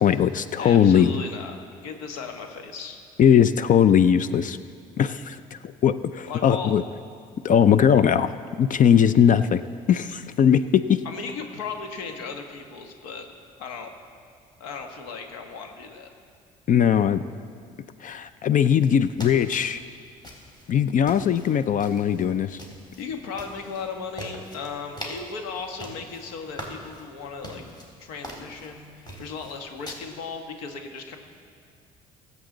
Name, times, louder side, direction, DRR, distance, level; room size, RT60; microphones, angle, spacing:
voice 1, 0.0-1.1 3.2-4.6 5.0-6.8 7.4-8.3 8.6-9.6 9.9-11.0 16.7-17.2 18.0-19.8 20.7-22.6, left 8 dB, 45° left, 13 dB, 0.5 m, -19 dB
voice 2, 0.6-1.6 1.8-3.0 6.3-6.8 11.0-13.3 13.6-13.9 14.6-16.1 22.4-22.5 23.0-27.6 28.0-31.2, left 5 dB, 80° left, 4 dB, 1.4 m, -36 dB
sound 1, 18.8-29.9, equal, 25° left, 3.8 m, -43 dB
21.5 x 8.2 x 3.9 m, 2.2 s
hypercardioid pair, 60°, 18 cm